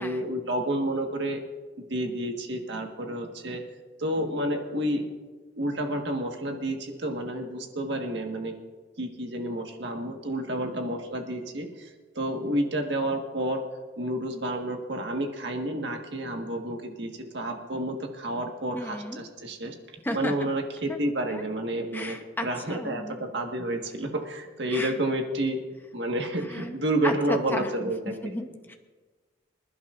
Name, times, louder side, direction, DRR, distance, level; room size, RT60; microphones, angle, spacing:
voice 1, 0.0-1.4 1.9-3.6 4.0-5.0 5.6-8.5 9.0-11.9 12.1-13.6 14.0-19.7 20.1-25.6 25.9-28.3, right 1 dB, 65° right, 3 dB, 1.6 m, -30 dB
voice 2, 18.7-19.3 20.0-20.5 20.9-21.0 21.3-21.4 21.9-23.3 24.7-24.9 26.4-26.7 27.0-28.7, left 1 dB, 10° left, 4 dB, 0.9 m, -34 dB
26.5 x 11.5 x 2.6 m, 1.3 s
head